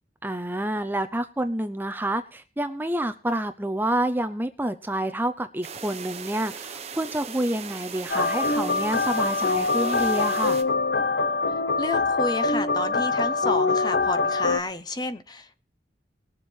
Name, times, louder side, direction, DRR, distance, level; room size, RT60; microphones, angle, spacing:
voice 1, 0.2-10.6, right 1 dB, 10° right, 10 dB, 0.7 m, -28 dB
sound 1, 5.6-10.6, right 6 dB, 35° right, 1.1 m, -38 dB
sound 2, 8.1-14.6, left 3 dB, 80° left, 1.0 m, -24 dB
voice 2, 11.8-15.6, left 2 dB, 25° left, 11 dB, 0.9 m, -30 dB
20.0 x 7.3 x 4.6 m, 0.37 s
head